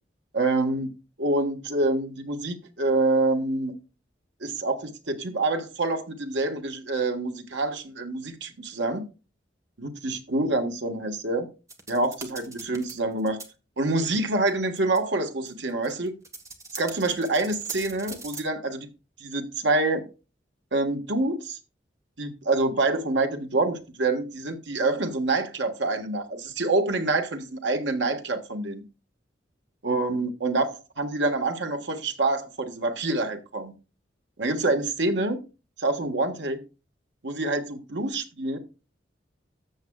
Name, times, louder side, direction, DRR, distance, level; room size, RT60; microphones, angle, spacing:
voice 1, 0.3-0.9 1.2-3.7 4.4-9.1 9.8-11.5 11.9-13.4 13.8-16.1 16.8-18.9 19.2-20.1 20.7-21.6 22.2-28.8 29.8-33.7 34.4-35.4 35.8-36.6 37.2-38.6, right 2 dB, 80° right, 1.4 m, -26 dB
sound 1, 11.7-12.9 13.2-13.4 14.1-14.2 14.5-14.6 14.8-15.0 15.5-18.4, right 3 dB, 15° right, 1.4 m, -40 dB
13.5 x 7.4 x 2.3 m
head